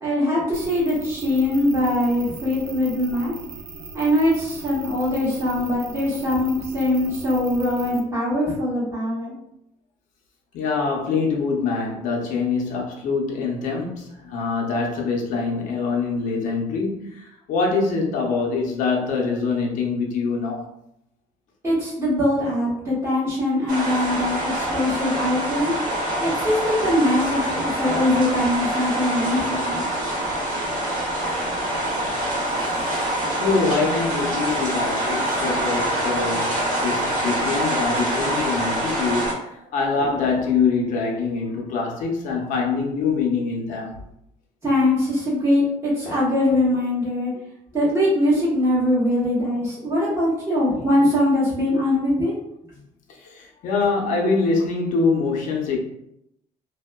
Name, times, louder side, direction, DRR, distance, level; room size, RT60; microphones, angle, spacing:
voice 1, 0.0-3.3 3.9-9.3 21.6-25.7 26.2-29.9 44.6-47.3 47.7-52.3, left 1 dB, 20° right, 1.5 m, -22 dB
sound 1, 0.5-8.0, right 4 dB, 90° right, 0.4 m, -39 dB
voice 2, 10.5-20.7 33.4-44.0 52.7-52.8 53.1-55.8, left 4 dB, 70° left, 0.6 m, -24 dB
sound 2, 23.7-39.3, right 1 dB, 70° right, 0.9 m, -25 dB
2.8 x 2.1 x 2.2 m
cardioid pair, 125°, 14 cm